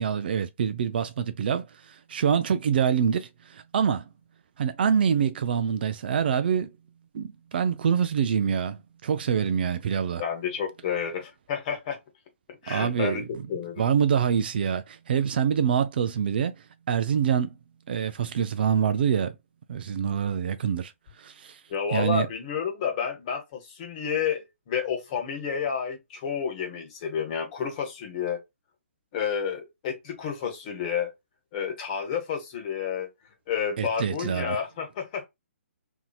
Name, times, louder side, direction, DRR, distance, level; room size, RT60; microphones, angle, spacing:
voice 1, 0.0-4.1 4.6-6.7 7.1-10.2 12.7-13.2 13.8-16.5 16.9-17.6 17.9-19.3 19.7-20.9 21.2-21.6 21.9-22.3 33.8-34.6, right 7 dB, 45° right, 0.4 m, -25 dB
voice 2, 10.2-12.0 12.6-13.8 21.7-28.4 29.1-31.1 31.5-33.1 33.5-35.3, left 7 dB, 35° left, 1.2 m, -30 dB
2.8 x 2.6 x 2.3 m
figure-of-eight pair, 130°, 7 cm